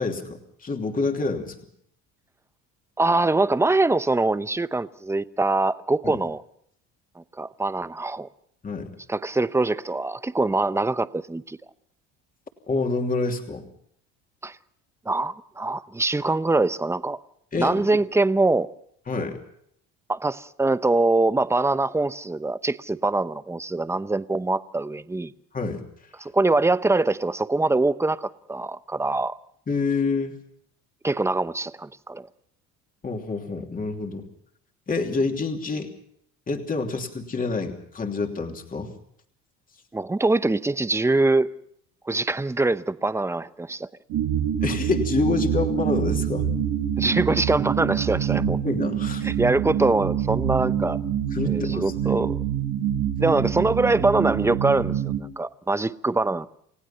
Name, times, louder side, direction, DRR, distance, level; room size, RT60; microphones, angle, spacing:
voice 1, 0.0-1.5 6.0-6.2 8.6-8.9 12.7-13.7 17.5-17.8 19.1-19.4 25.5-25.8 29.7-30.4 33.0-34.3 34.9-35.9 36.5-38.9 44.6-46.5 48.6-49.3 51.3-52.2, left 4 dB, 25° left, 3.0 m, -27 dB
voice 2, 3.0-6.4 7.2-8.3 9.1-11.6 14.4-14.6 15.1-17.2 17.6-18.7 20.1-25.3 26.2-29.3 31.0-32.3 39.9-41.5 42.1-43.9 47.0-48.6 49.2-51.0 51.4-52.4 53.2-56.5, right 2 dB, 10° right, 0.8 m, -23 dB
sound 1, 44.1-55.2, right 9 dB, 80° right, 3.4 m, -26 dB
29.5 x 16.5 x 5.7 m
supercardioid pair, 100°, 32 cm